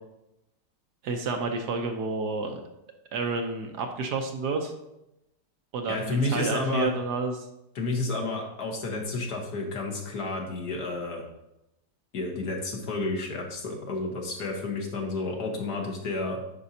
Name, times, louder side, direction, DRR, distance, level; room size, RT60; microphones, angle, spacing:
voice 1, 1.0-2.6 3.1-4.7 5.7-7.5, right 3 dB, 70° right, 4 dB, 1.3 m, -30 dB
voice 2, 5.9-6.9 7.7-11.2 12.1-16.4, left 2 dB, 60° left, 0 dB, 1.7 m, -30 dB
10.0 x 5.3 x 2.7 m, 0.88 s
omnidirectional pair, 2.0 m